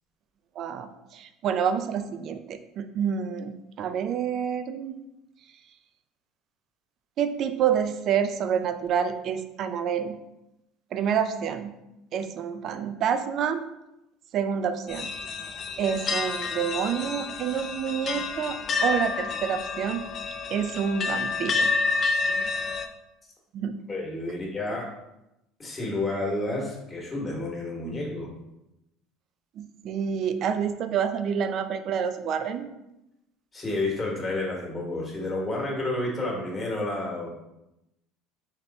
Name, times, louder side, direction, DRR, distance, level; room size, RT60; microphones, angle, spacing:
voice 1, 0.6-5.0 7.2-10.2 10.9-11.7 12.1-13.7 14.3-15.1 15.8-20.0 20.5-21.7 23.5-23.8 24.3-24.4 27.8-27.9 29.6-32.7, right 7 dB, 50° right, 10 dB, 0.4 m, -28 dB
sound 1, 14.9-22.9, left 4 dB, 35° left, 0.4 m, -29 dB
voice 2, 23.9-24.8 25.6-28.3 33.5-37.3, left 2 dB, 20° left, -2 dB, 1.1 m, -30 dB
3.6 x 3.1 x 3.9 m, 0.90 s
cardioid pair, 125°, 0 cm